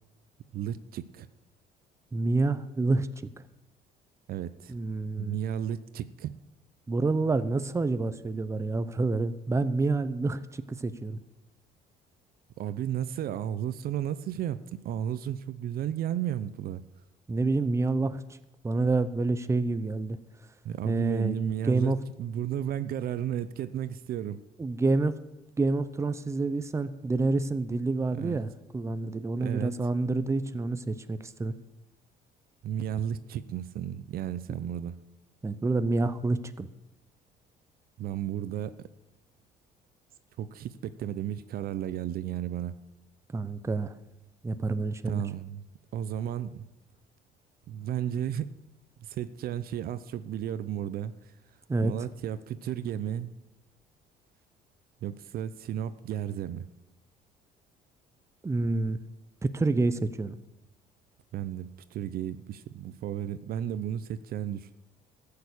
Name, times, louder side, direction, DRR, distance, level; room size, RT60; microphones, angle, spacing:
voice 1, 0.5-1.3 4.3-4.7 5.2-6.3 12.6-16.8 20.6-21.9 22.2-24.4 28.1-28.4 29.4-29.7 32.6-35.0 38.0-38.9 40.4-42.7 45.0-45.6 45.9-46.6 47.7-48.5 49.0-51.3 51.8-53.3 55.0-56.7 61.3-64.7, right 10 dB, 60° right, 14 dB, 0.7 m, -33 dB
voice 2, 2.1-3.1 4.7-5.4 6.9-11.2 17.3-18.2 18.6-20.2 20.8-21.4 21.6-22.0 24.6-25.1 25.6-31.5 35.4-36.7 43.3-43.9 44.4-45.2 51.7-51.9 58.4-59.0 59.4-60.3, right 3 dB, 15° right, 12 dB, 0.7 m, -28 dB
14.0 x 6.8 x 8.4 m, 0.94 s
cardioid pair, 110°, 17 cm